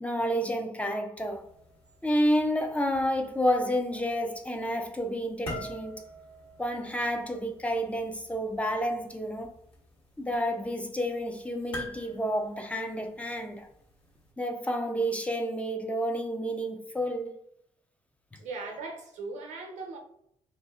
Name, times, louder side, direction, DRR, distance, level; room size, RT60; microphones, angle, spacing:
voice 1, 0.0-1.4 2.0-6.0 6.6-9.5 10.2-13.7 14.4-17.3, equal, 10° left, 0.4 m, -30 dB
sound 1, 1.1-14.3, equal, 45° left, 1.3 m, -48 dB
voice 2, 18.4-20.0, right 3 dB, 85° right, 0.6 m, -39 dB
2.6 x 2.6 x 2.3 m
cardioid pair, 85°, 12 cm